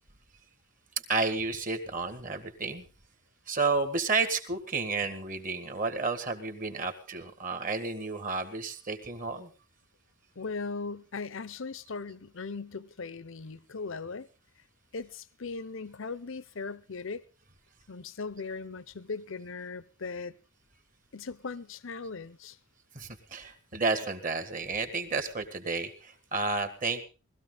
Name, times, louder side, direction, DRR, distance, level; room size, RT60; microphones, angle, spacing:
voice 1, 1.1-2.8 3.5-9.5 22.9-27.0, right 3 dB, 40° right, 1.8 m, -31 dB
voice 2, 10.4-14.3 14.9-17.2 17.9-20.4 21.1-22.6, left 4 dB, 60° left, 0.7 m, -38 dB
19.5 x 14.0 x 3.9 m
head